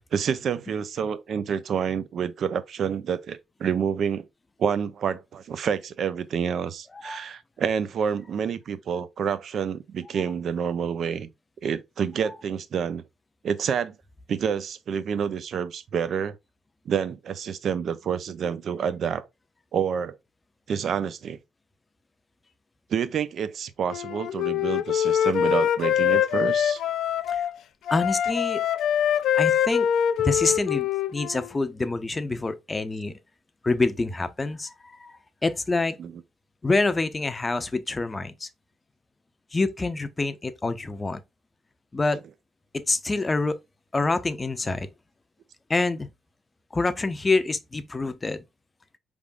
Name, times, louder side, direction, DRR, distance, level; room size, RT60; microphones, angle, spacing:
voice 1, 0.1-4.2 4.6-11.3 11.6-13.0 13.4-13.9 14.3-16.3 16.9-19.3 19.7-20.2 20.7-21.4 22.9-26.8 36.0-36.2, right 7 dB, 60° right, 0.5 m, -28 dB
Wind instrument woodwind instrument, 23.9-27.5 27.9-31.5, left 9 dB, 75° left, 0.4 m, -24 dB
voice 2, 27.9-28.6 29.3-29.9 30.2-33.2 33.6-35.1 35.4-36.0 36.6-38.5 39.5-41.2 41.9-42.2 42.7-43.6 43.9-44.9 45.7-46.1 46.7-48.4, left 3 dB, 25° left, 0.6 m, -26 dB
4.9 x 3.5 x 2.4 m
cardioid pair, 90°, 0 cm